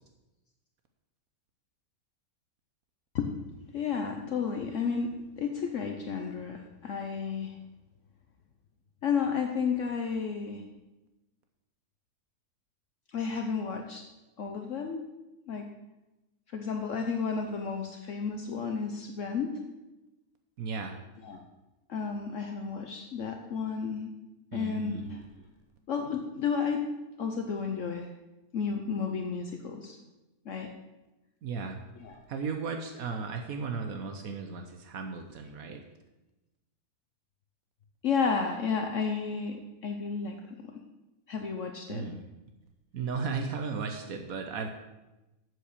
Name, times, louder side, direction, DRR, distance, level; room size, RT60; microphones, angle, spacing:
voice 1, 3.7-7.6 9.0-10.6 13.1-14.0 14.4-15.0 15.5-15.7 16.5-19.6 21.2-21.4 21.9-24.1 24.5-25.2 25.9-26.9 27.2-28.1 28.5-30.0 30.5-30.7 31.9-32.2 38.0-40.7 41.3-42.1, left 5 dB, 60° left, 4 dB, 1.1 m, -32 dB
voice 2, 20.6-21.0 24.5-25.0 31.4-31.8 32.3-35.8 41.9-42.2 42.9-44.7, right 5 dB, 75° right, 5 dB, 1.3 m, -35 dB
8.1 x 7.7 x 6.6 m, 1.0 s
omnidirectional pair, 1.5 m